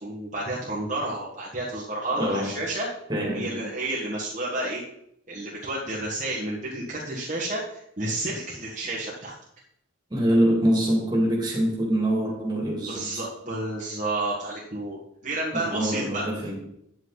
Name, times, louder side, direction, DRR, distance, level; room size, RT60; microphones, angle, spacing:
voice 1, 0.0-2.9 3.3-4.8 5.3-9.4 12.9-16.2, right 2 dB, 35° right, -5 dB, 1.7 m, -31 dB
voice 2, 2.2-2.6 3.1-3.7 10.1-13.1 15.5-16.6, right 1 dB, 20° right, -3 dB, 2.6 m, -24 dB
9.9 x 8.0 x 4.1 m, 0.76 s
head